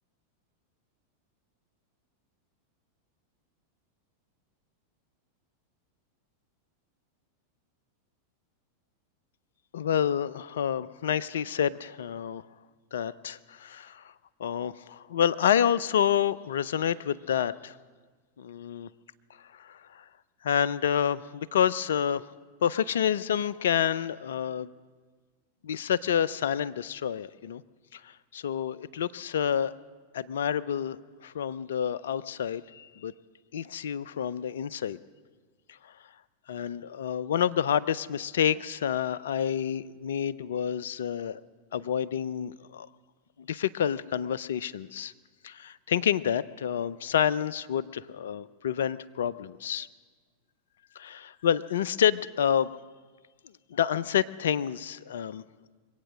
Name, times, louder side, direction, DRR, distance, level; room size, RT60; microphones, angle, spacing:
voice 1, 9.7-12.4 12.9-14.0 14.4-17.7 18.4-18.9 19.6-20.0 20.4-22.2 22.6-24.7 25.6-27.6 27.9-29.7 30.1-33.1 33.5-35.0 36.5-41.4 41.7-42.9 43.5-45.1 45.4-49.9 51.0-52.7 53.7-55.4, left 9 dB, 60° left, 19 dB, 0.4 m, -28 dB
23.5 x 8.9 x 6.3 m, 1.5 s
figure-of-eight pair, 90°, 0 cm